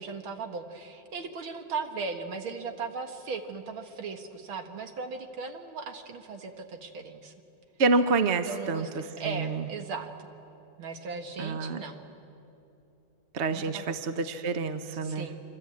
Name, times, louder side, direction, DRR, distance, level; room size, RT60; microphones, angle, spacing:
voice 1, 0.0-7.3 8.2-8.9 9.2-10.1 10.8-12.1 13.5-14.0 15.0-15.4, right 5 dB, 80° right, 5 dB, 2.5 m, -37 dB
voice 2, 7.8-9.7 11.4-11.8 13.3-15.3, right 3 dB, 45° right, 9 dB, 0.9 m, -28 dB
25.5 x 25.0 x 8.5 m, 2.8 s
omnidirectional pair, 2.2 m